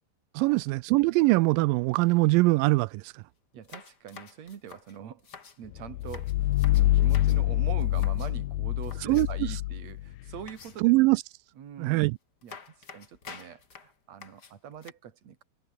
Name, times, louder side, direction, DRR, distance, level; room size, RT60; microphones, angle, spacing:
voice 1, 0.3-3.2 9.0-9.5 10.8-11.2 11.8-12.2, right 22 dB, 85° right, 2.0 m, -23 dB
sound 1, 2.7-2.8 3.1-3.2 3.6-5.6 6.0-7.4 7.8-8.4 8.8-9.5 10.5-11.0 11.9-12.0 12.4-14.9, left 5 dB, 35° left, 2.0 m, -49 dB
voice 2, 3.5-5.3 5.6-10.9 11.6-12.1 12.4-15.4, right 9 dB, 50° right, 3.0 m, -44 dB
sound 2, 5.8-10.4, left 16 dB, 75° left, 2.6 m, -26 dB
omnidirectional pair, 4.5 m